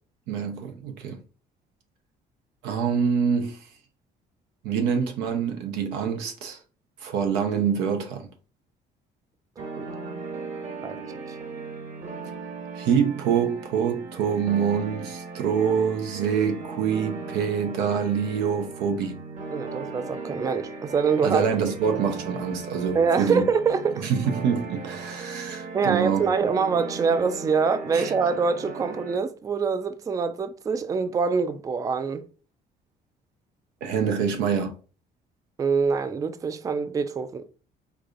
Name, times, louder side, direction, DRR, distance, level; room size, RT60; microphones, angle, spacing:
voice 1, 0.3-1.2 2.6-3.6 4.6-6.6 7.0-8.3 12.7-19.2 21.2-23.4 24.0-26.3 27.9-28.1 33.8-34.7, right 7 dB, 90° right, 0.8 m, -25 dB
Electric Cycles Synth Line, 9.6-29.2, right 4 dB, 45° right, 1.1 m, -37 dB
voice 2, 19.5-21.5 22.9-24.0 25.7-32.3 35.6-37.5, right 5 dB, 20° right, 0.3 m, -25 dB
4.7 x 2.5 x 2.4 m
cardioid pair, 110°, 17 cm